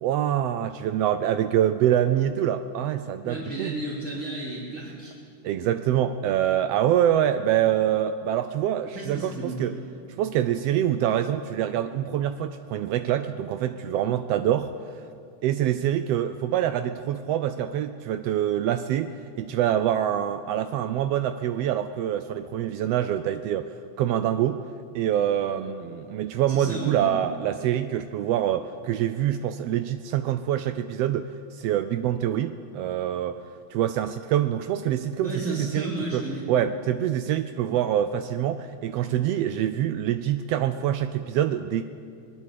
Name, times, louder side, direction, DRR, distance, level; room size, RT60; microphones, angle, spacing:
voice 1, 0.0-3.8 5.4-9.7 10.2-15.0 15.4-23.7 24.0-24.6 24.9-33.4 33.7-41.8, right 11 dB, 80° right, 10 dB, 1.4 m, -25 dB
voice 2, 3.2-5.1 8.9-9.7 26.5-27.1 35.2-36.5, right 1 dB, 25° right, -6 dB, 3.6 m, -33 dB
25.5 x 20.0 x 6.7 m, 2.4 s
omnidirectional pair, 3.5 m